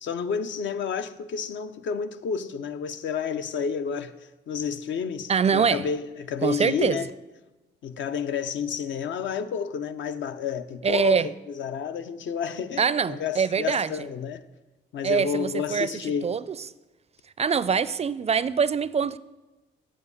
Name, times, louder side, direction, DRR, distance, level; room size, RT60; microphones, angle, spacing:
voice 1, 0.0-7.1 7.8-14.4 14.9-16.4, left 6 dB, 70° left, 0.7 m, -30 dB
voice 2, 5.3-5.8 6.4-7.0 10.8-11.3 12.8-13.9 15.0-15.9 16.2-16.4 17.4-19.2, right 6 dB, 35° right, 0.4 m, -24 dB
7.7 x 7.3 x 8.2 m
cardioid pair, 90°, 20 cm